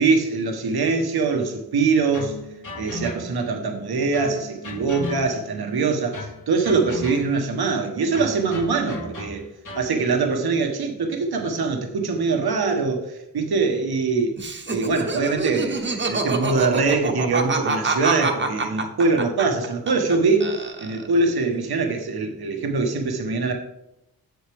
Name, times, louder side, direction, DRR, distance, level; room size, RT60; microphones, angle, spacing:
voice 1, 0.0-2.3 2.8-9.4 9.7-14.4 14.7-23.5, right 4 dB, 85° right, 3 dB, 1.2 m, -23 dB
sound 1, 2.1-3.5 4.1-5.6 6.1-7.5 8.1-10.0, left 2 dB, 55° left, 1.7 m, -36 dB
Laughter, 14.4-20.2 20.4-21.2, right 3 dB, 30° right, 0.9 m, -26 dB
8.0 x 7.9 x 3.4 m, 0.87 s
wide cardioid pair, 160°, 37 cm